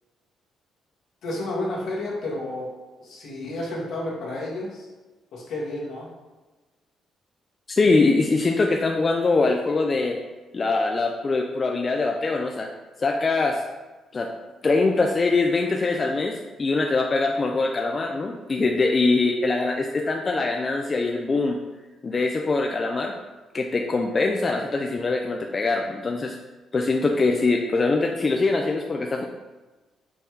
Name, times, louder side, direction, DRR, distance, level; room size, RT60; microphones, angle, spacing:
voice 1, 1.2-2.7 3.0-4.9 5.3-6.1, left 1 dB, 75° left, -4 dB, 1.4 m, -31 dB
voice 2, 7.7-10.2 10.5-12.7 13.0-13.6 14.1-14.3 14.6-21.6 22.0-23.2 23.5-26.4 26.7-29.2, left 3 dB, 35° left, 2 dB, 0.4 m, -23 dB
5.2 x 2.2 x 4.6 m, 1.2 s
cardioid pair, 90°, 0 cm